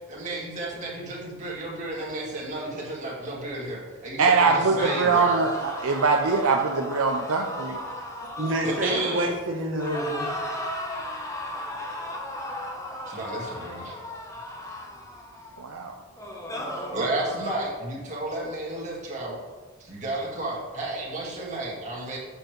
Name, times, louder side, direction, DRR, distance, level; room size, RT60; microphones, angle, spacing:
voice 1, 0.1-5.5 8.6-9.3 13.1-13.9 16.9-19.4 19.8-22.2, right 2 dB, 35° right, -5 dB, 1.8 m, -32 dB
voice 2, 4.2-7.8 15.6-16.0, right 4 dB, 75° right, 2 dB, 0.5 m, -22 dB
sound 1, 4.8-9.4 9.8-15.6 16.2-17.6, left 1 dB, 15° left, 0.8 m, -35 dB
voice 3, 8.2-10.3, right 1 dB, 60° right, -2 dB, 1.4 m, -28 dB
7.5 x 6.8 x 3.1 m, 1.3 s
head